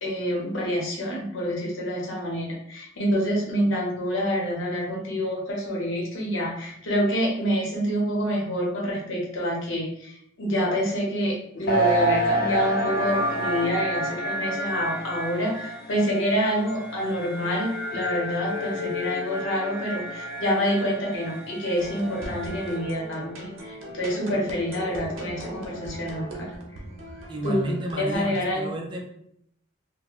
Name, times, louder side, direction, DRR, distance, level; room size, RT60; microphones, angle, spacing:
voice 1, 0.0-26.8 27.4-28.7, equal, 75° left, -2 dB, 0.8 m, -27 dB
sound 1, 11.7-23.1, right 1 dB, 50° left, 0.4 m, -29 dB
sound 2, 21.8-28.5, right 1 dB, 85° right, 0.6 m, -39 dB
voice 2, 27.3-29.0, right 1 dB, 25° right, 0 dB, 0.4 m, -31 dB
2.4 x 2.1 x 2.9 m, 0.71 s
head